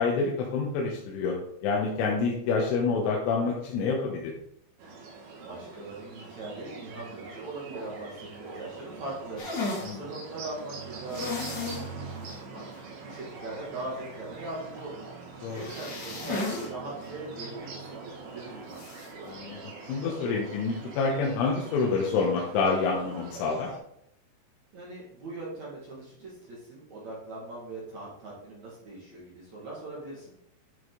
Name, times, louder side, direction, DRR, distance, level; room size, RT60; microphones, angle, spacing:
voice 1, 0.0-1.4 1.6-4.3 9.8-10.0 15.4-15.6 19.2-23.7, left 4 dB, 85° left, -1 dB, 3.6 m, -27 dB
sound 1, 4.8-23.8, right 4 dB, 80° right, 4.8 m, -43 dB
voice 2, 5.4-9.4 9.8-12.2 12.5-12.6 13.0-15.0 15.5-18.8 24.7-30.4, right 2 dB, 50° right, -5 dB, 2.6 m, -40 dB
sound 2, 9.4-9.9 11.1-11.9 12.2-12.3 12.7-12.8 15.5-16.7 17.0-17.1 18.7-19.1, left 3 dB, 45° left, 1.5 m, -34 dB
10.5 x 6.3 x 3.9 m, 0.75 s
omnidirectional pair, 5.5 m